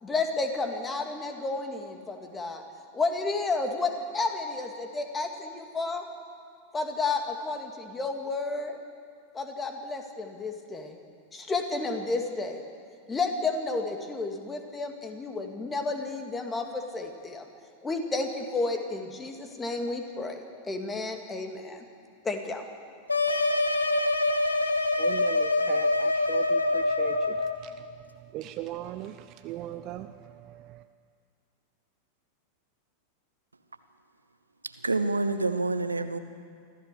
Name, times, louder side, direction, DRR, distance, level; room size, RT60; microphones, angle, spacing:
voice 1, 0.0-2.6 2.9-6.0 6.7-8.8 9.3-11.0 11.3-12.6 13.1-17.5 17.8-21.8 22.2-22.6, left 3 dB, 15° left, 4 dB, 2.3 m, -31 dB
sound 1, 23.1-27.6, left 2 dB, 80° left, 1.2 m, -25 dB
voice 2, 25.0-27.4 28.3-29.2 29.4-30.1, right 13 dB, 40° right, 11 dB, 0.6 m, -38 dB
voice 3, 34.6-36.2, right 3 dB, 80° right, 11 dB, 0.9 m, -28 dB
25.0 x 15.0 x 6.9 m, 2.2 s
figure-of-eight pair, 90°, 0 cm